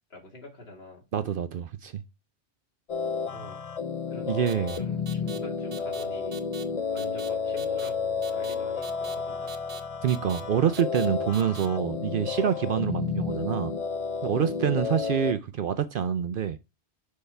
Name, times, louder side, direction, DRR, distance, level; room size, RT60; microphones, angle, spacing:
voice 1, 0.1-1.0 3.3-3.6 4.1-6.4 6.9-9.6, left 2 dB, 60° left, 2.5 m, -45 dB
voice 2, 1.1-2.0 4.3-4.8 10.0-13.7 14.2-16.6, right 9 dB, 60° right, 0.7 m, -26 dB
sound 1, 2.9-15.3, left 5 dB, 40° left, 0.6 m, -31 dB
sound 2, 4.5-4.8 5.1-5.4 5.7-6.0 6.3-6.6 7.0-7.3 7.6-7.9 8.2-8.5 8.8-9.1 9.5-9.8 10.1-10.4 10.7-11.1 11.3-11.7, right 6 dB, 75° right, 1.5 m, -43 dB
6.5 x 5.3 x 3.3 m
omnidirectional pair, 1.1 m